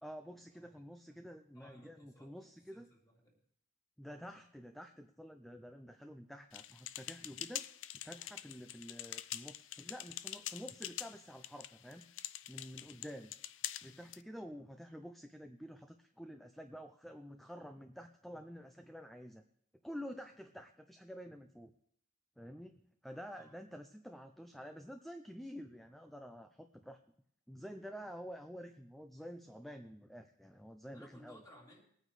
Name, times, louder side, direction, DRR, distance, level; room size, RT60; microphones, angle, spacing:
voice 1, 0.0-2.9 4.0-7.7 8.0-12.1 12.5-13.3 13.8-19.4 19.8-21.7 22.4-27.0 27.5-31.4, equal, ahead, 6 dB, 0.4 m, -49 dB
voice 2, 1.5-3.4 23.4-23.6 30.9-31.8, equal, 15° left, -3 dB, 3.2 m, -61 dB
sound 1, 6.5-14.2, left 13 dB, 60° left, 0.4 m, -45 dB
22.5 x 9.2 x 3.3 m, 0.66 s
head